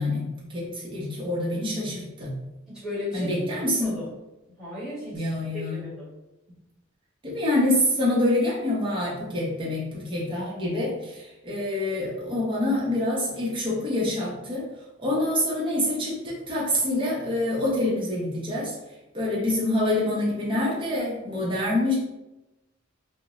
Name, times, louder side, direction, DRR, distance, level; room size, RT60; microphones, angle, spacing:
voice 1, 0.0-2.3 3.1-4.0 5.1-5.8 7.2-14.6 15.0-18.7 19.1-22.0, left 1 dB, 25° right, -6 dB, 0.8 m, -26 dB
voice 2, 2.7-4.0 4.5-6.1, left 2 dB, 5° right, -10 dB, 1.5 m, -36 dB
2.4 x 2.1 x 3.0 m, 0.98 s
head